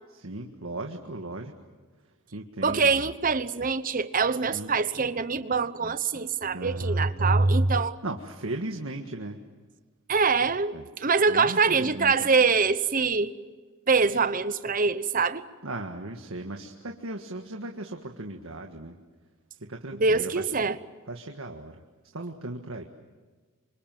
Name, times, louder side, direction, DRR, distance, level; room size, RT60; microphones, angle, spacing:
voice 1, 0.1-1.5 2.3-2.9 4.5-4.7 6.5-7.4 8.0-9.4 10.7-10.9 11.3-12.3 15.6-19.0 19.6-20.6 21.1-21.8 22.1-22.8, right 2 dB, 70° right, 3 dB, 1.7 m, -37 dB
voice 2, 2.6-8.0 10.1-13.4 13.9-15.4 19.9-20.8, right 4 dB, 40° right, 13 dB, 1.0 m, -24 dB
28.0 x 25.5 x 7.7 m, 1.4 s
head